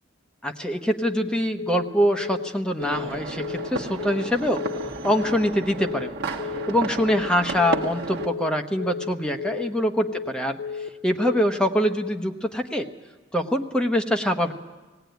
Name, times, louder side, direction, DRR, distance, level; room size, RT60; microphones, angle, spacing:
voice 1, 0.4-4.6 5.0-6.1 6.7-10.6 11.0-12.9 13.3-14.5, equal, 5° left, 3 dB, 1.0 m, -24 dB
Telephone, 1.0-1.3 1.6-1.9 2.2-2.5 2.8-3.1 3.4-3.7 4.0-4.3 4.6-4.9 5.2-5.5 5.8-6.1 6.4-6.7 7.0-7.3 7.6-7.9 8.2-8.5 8.8-9.1 9.4-9.7 10.0-10.3 10.6-10.9 11.2-11.5 11.8-12.1, left 6 dB, 85° left, 0.6 m, -33 dB
sound 1, 2.8-8.3, right 2 dB, 55° right, 1.4 m, -33 dB
19.0 x 16.5 x 9.3 m, 1.2 s
head